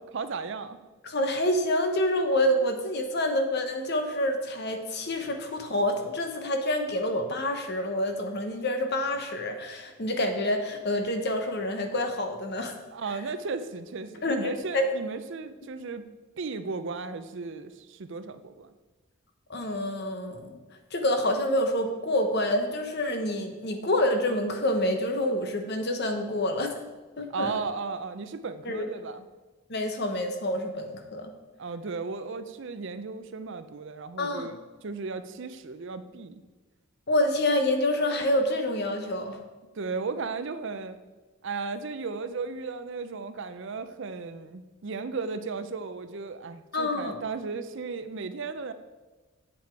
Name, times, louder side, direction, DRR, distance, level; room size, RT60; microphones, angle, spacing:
voice 1, 0.1-0.8 12.9-16.1 16.4-18.7 27.3-29.3 31.6-36.4 39.7-41.0 41.4-48.7, right 4 dB, 55° right, 11 dB, 0.5 m, -35 dB
voice 2, 1.0-12.8 14.2-14.9 19.5-20.6 20.9-26.7 27.2-27.5 28.6-28.8 29.7-31.3 34.2-34.5 37.1-39.4 46.7-47.2, left 1 dB, 50° left, 5 dB, 1.0 m, -27 dB
8.3 x 7.7 x 4.6 m, 1.2 s
head